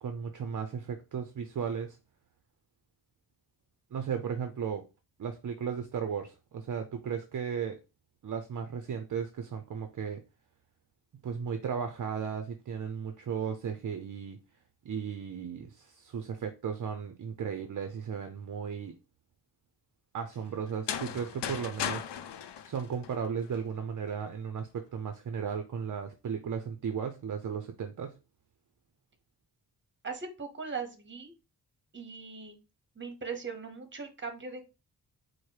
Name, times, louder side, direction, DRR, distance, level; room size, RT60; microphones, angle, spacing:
voice 1, 0.0-2.0 3.9-4.9 5.2-7.8 8.2-10.2 11.2-14.4 14.8-19.0 20.1-22.1 22.6-28.2, right 7 dB, 50° right, 0.5 m, -35 dB
sound 1, 20.7-23.6, left 9 dB, 85° left, 0.6 m, -37 dB
voice 2, 30.0-31.3 31.9-32.6 33.0-34.6, right 5 dB, 30° right, 1.0 m, -39 dB
4.8 x 2.1 x 4.5 m
wide cardioid pair, 140°, 40 cm